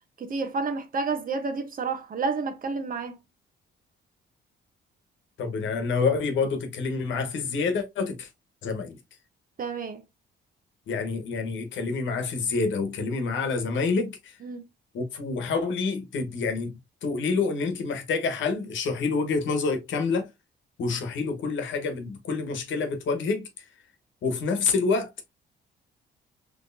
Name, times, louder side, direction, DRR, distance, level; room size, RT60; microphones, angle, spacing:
voice 1, 0.2-3.1 9.6-10.0 14.4-14.6, right 4 dB, 45° right, 0.9 m, -30 dB
voice 2, 5.4-8.3 8.6-9.0 10.9-14.4 14.9-20.3 20.8-23.6 24.2-25.1, left 4 dB, 70° left, 1.2 m, -27 dB
4.1 x 3.2 x 2.6 m
cardioid pair, 90°, 20 cm